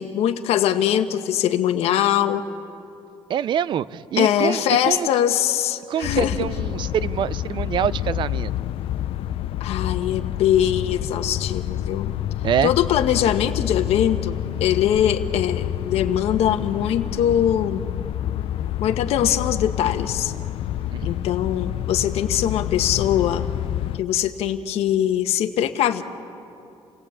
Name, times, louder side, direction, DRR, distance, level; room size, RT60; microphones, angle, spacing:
voice 1, 0.0-2.5 4.2-6.5 9.6-12.1 12.6-17.8 18.8-20.3 21.0-23.5 23.9-26.0, left 10 dB, 80° left, 7 dB, 1.1 m, -22 dB
voice 2, 3.3-5.1 5.9-8.5 12.4-12.7 20.9-21.3, right 9 dB, 50° right, 18 dB, 0.5 m, -25 dB
sound 1, 6.0-24.0, left 12 dB, 65° left, 0.6 m, -28 dB
28.5 x 18.5 x 8.7 m, 2.7 s
cardioid pair, 155°, 10 cm